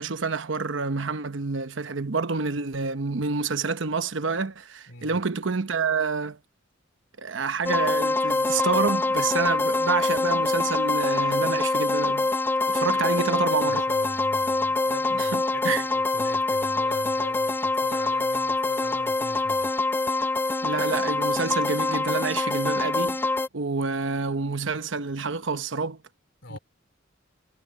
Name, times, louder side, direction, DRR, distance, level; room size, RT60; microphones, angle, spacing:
voice 1, 0.0-6.4 7.2-12.3 12.7-13.9 15.1-15.8 20.6-23.2 23.5-26.0 26.5-26.6, right 4 dB, 75° right, 1.0 m, -28 dB
voice 2, 4.9-5.2 12.9-19.7 26.4-26.6, left 1 dB, 70° left, 4.4 m, -41 dB
sound 1, 7.6-23.5, left 3 dB, 10° left, 0.3 m, -25 dB
head